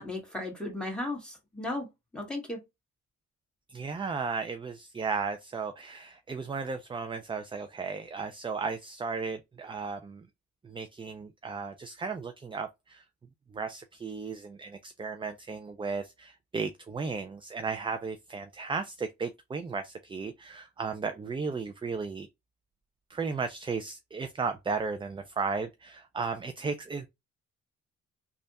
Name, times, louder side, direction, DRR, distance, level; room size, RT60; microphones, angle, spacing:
voice 1, 0.0-1.9 2.1-2.6, left 2 dB, 5° left, 1.8 m, -35 dB
voice 2, 3.7-10.3 10.6-13.0 13.5-22.3 23.1-27.1, right 4 dB, 15° right, 0.4 m, -35 dB
3.3 x 2.4 x 4.0 m
cardioid pair, 90°, 30 cm